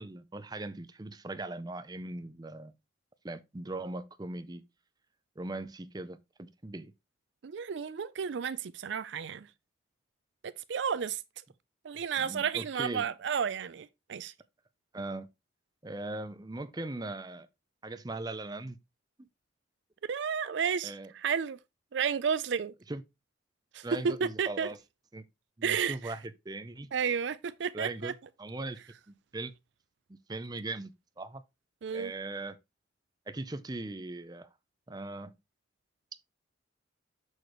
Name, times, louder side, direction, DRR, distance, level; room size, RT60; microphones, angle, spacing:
voice 1, 0.0-2.7 3.2-4.6 5.4-6.9 12.2-13.1 14.9-15.3 15.8-17.5 17.8-18.8 19.2-19.3 20.8-21.1 22.9-23.0 23.8-24.8 25.1-25.2 25.6-26.2 26.4-26.9 27.7-28.1 28.4-28.8 29.1-29.5 30.1-31.4 31.9-32.6 33.3-34.5 34.9-35.3, right 2 dB, 20° right, 0.6 m, -39 dB
voice 2, 7.4-9.5 10.4-11.2 11.8-14.3 20.1-21.6 21.9-22.7 23.7-24.7 25.6-26.1 26.9-28.1 31.8-32.1, right 7 dB, 65° right, 0.4 m, -32 dB
6.7 x 6.4 x 3.0 m
head